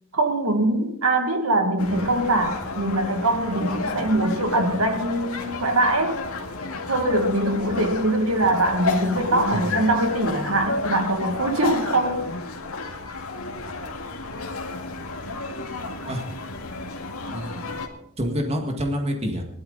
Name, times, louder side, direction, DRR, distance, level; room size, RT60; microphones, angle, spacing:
voice 1, 0.1-6.2 6.9-12.3, right 1 dB, 80° right, 5 dB, 2.0 m, -22 dB
sound 1, 1.8-17.9, left 3 dB, 90° left, 2.0 m, -31 dB
voice 2, 17.3-17.7 18.2-19.4, equal, 30° right, 2 dB, 1.9 m, -27 dB
18.5 x 12.0 x 4.0 m, 0.73 s
head